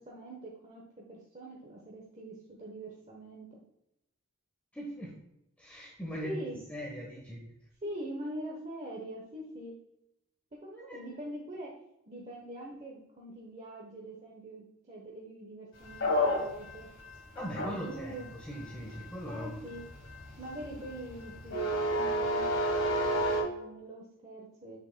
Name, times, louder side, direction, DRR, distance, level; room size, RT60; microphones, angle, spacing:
voice 1, 0.0-3.6 6.2-6.6 7.8-9.7 10.5-11.7 12.1-16.9 17.6-18.3 19.3-19.8 20.4-24.8, right 1 dB, 30° right, -2 dB, 1.0 m, -43 dB
voice 2, 4.7-5.1 5.6-6.4 6.7-7.5 10.7-11.0 17.3-19.7, equal, 5° left, -4 dB, 1.1 m, -40 dB
sound 1, 15.9-23.4, equal, 55° left, 1.9 m, -31 dB
8.1 x 6.7 x 2.2 m, 0.86 s
head